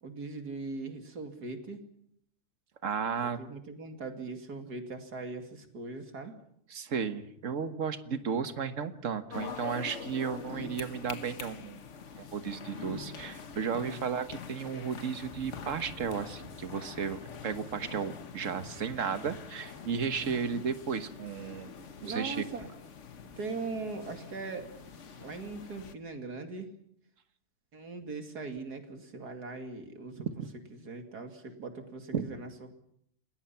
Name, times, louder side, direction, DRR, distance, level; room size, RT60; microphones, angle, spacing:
voice 1, 0.0-1.9 3.4-6.3 13.8-14.1 20.2-20.7 22.0-22.7 23.4-24.7 25.2-26.7 27.7-30.3 30.7-32.7, right 3 dB, 80° right, 6 dB, 2.9 m, -40 dB
voice 2, 2.8-3.4 6.7-11.8 12.2-21.7 22.0-22.4 30.2-30.5 32.1-32.3, right 6 dB, 55° right, 10 dB, 1.7 m, -34 dB
sound 1, 9.3-26.0, left 6 dB, 55° left, 1.4 m, -45 dB
sound 2, 10.5-25.4, left 1 dB, 25° right, 6.4 m, -57 dB
28.5 x 21.0 x 5.8 m, 0.70 s
omnidirectional pair, 1.6 m